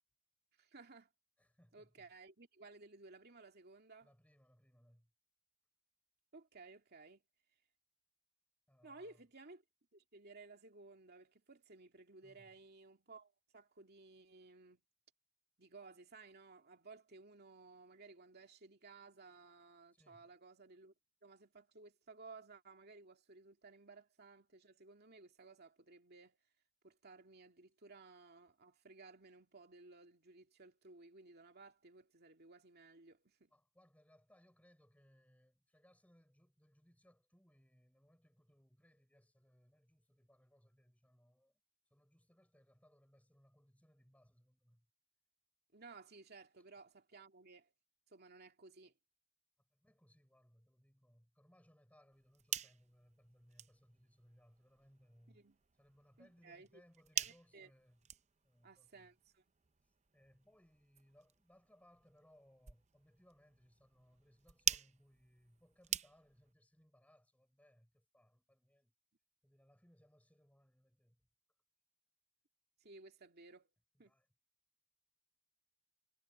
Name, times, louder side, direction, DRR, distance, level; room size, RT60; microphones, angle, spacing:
voice 1, 0.6-1.1 1.7-4.1 6.3-7.2 8.8-9.6 9.9-14.8 15.6-20.9 21.2-26.4 26.8-33.5 45.7-47.7 48.1-48.9 55.3-55.6 56.2-56.7 57.2-57.7 58.6-59.4 72.8-73.7 74.0-74.1, right 3 dB, 50° right, 2.6 m, -58 dB
voice 2, 1.4-2.1 4.0-5.1 8.7-9.2 12.2-12.6 19.9-20.3 33.5-41.6 41.9-44.9 49.7-55.5 55.8-58.1 58.4-59.1 59.8-68.9 69.4-71.3 73.9-74.3, equal, 5° left, 4.9 m, -69 dB
sound 1, 52.1-66.5, right 9 dB, 30° right, 0.7 m, -46 dB
head